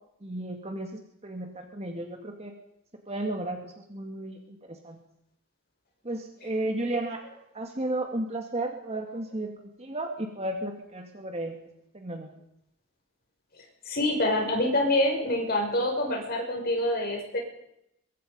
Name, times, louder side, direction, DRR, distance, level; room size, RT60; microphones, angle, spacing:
voice 1, 0.2-0.9 1.2-2.5 3.1-5.0 6.0-7.2 7.5-11.6 11.9-12.3, right 1 dB, 30° right, 3 dB, 2.2 m, -33 dB
voice 2, 13.8-17.4, left 1 dB, 45° left, 1 dB, 6.5 m, -26 dB
23.5 x 23.0 x 5.5 m, 0.80 s
head